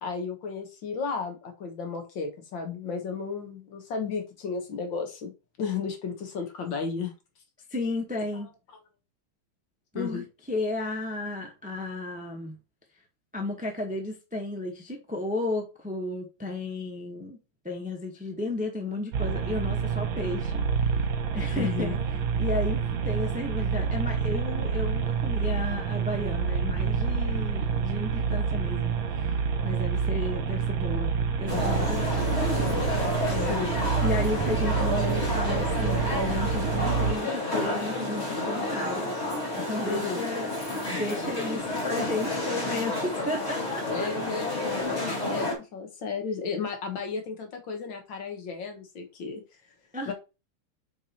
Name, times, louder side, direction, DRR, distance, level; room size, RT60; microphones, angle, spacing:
voice 1, 0.0-5.3 5.6-7.1 9.9-10.2 21.5-22.0 33.3-33.9 39.9-40.2 43.9-49.4 50.1-50.2, left 5 dB, 65° left, 1.9 m, -33 dB
voice 2, 7.7-8.5 9.9-12.6 13.3-17.4 17.6-20.7 21.3-22.0 22.4-31.1 31.4-32.8 33.3-33.7 34.0-40.5 40.9-44.1 49.9-50.1, left 2 dB, 10° right, 0.4 m, -33 dB
sound 1, 19.1-37.2, right 6 dB, 70° right, 1.6 m, -28 dB
sound 2, 31.5-45.6, left 1 dB, 35° left, 1.8 m, -30 dB
7.0 x 4.7 x 2.8 m
omnidirectional pair, 2.3 m